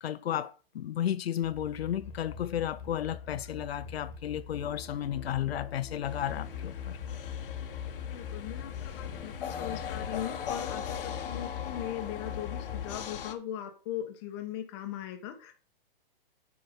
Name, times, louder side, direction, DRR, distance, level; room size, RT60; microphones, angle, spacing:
voice 1, 0.0-7.0, left 11 dB, 85° left, 0.7 m, -33 dB
sound 1, 1.4-13.0, left 7 dB, 40° left, 1.7 m, -42 dB
sound 2, 6.0-13.3, left 7 dB, 65° left, 1.5 m, -40 dB
voice 2, 8.0-15.5, left 11 dB, 25° left, 1.2 m, -39 dB
9.4 x 4.7 x 5.2 m
hypercardioid pair, 165°, 30 cm